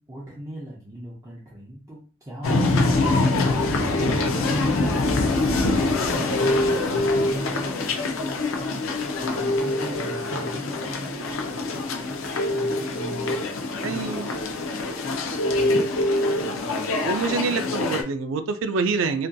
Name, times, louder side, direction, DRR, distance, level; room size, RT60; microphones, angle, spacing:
voice 1, 0.0-14.3 17.3-17.5, right 1 dB, 15° right, -6 dB, 0.5 m, -38 dB
sound 1, 2.4-18.0, left 2 dB, 80° left, 0.5 m, -24 dB
voice 2, 13.8-14.3 17.0-19.3, right 4 dB, 70° right, 10 dB, 0.3 m, -26 dB
2.6 x 2.5 x 2.2 m, 0.37 s
head